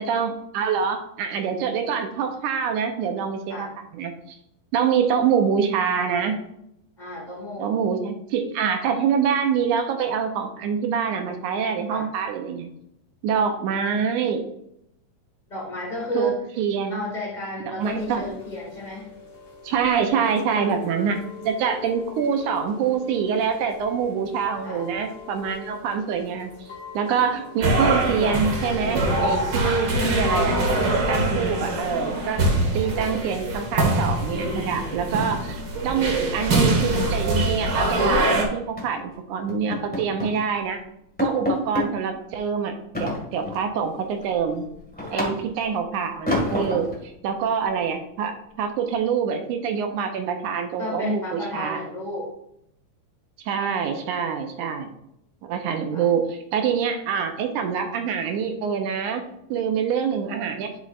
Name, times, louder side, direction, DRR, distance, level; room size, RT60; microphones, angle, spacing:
voice 1, 0.0-4.4 4.7-6.4 7.6-12.7 13.2-14.5 16.1-17.0 17.7-18.3 19.6-21.2 21.4-32.5 32.7-40.8 41.2-44.7 45.1-48.3 48.6-51.8 53.5-54.9 55.4-59.2 59.5-60.7, right 7 dB, 75° right, 5 dB, 2.1 m, -25 dB
voice 2, 7.0-7.8 11.9-12.1 15.5-16.4 16.9-19.1 20.5-20.7 24.6-24.9 45.1-45.3 50.8-52.3 55.9-56.1, left 2 dB, 80° left, -3 dB, 0.4 m, -32 dB
Chime / Rain, 17.8-36.2, left 5 dB, 50° left, 2.6 m, -42 dB
sound 1, 27.6-38.4, right 1 dB, 55° right, 1.3 m, -23 dB
sound 2, 35.7-35.9 36.2-36.3 36.7-38.2 38.8-39.0 39.5-40.4 40.8-40.9 41.2-41.9 42.9-43.7 44.1-45.7 46.3-47.0, left 1 dB, 5° left, 0.8 m, -29 dB
11.5 x 5.5 x 2.5 m, 0.77 s
omnidirectional pair, 3.8 m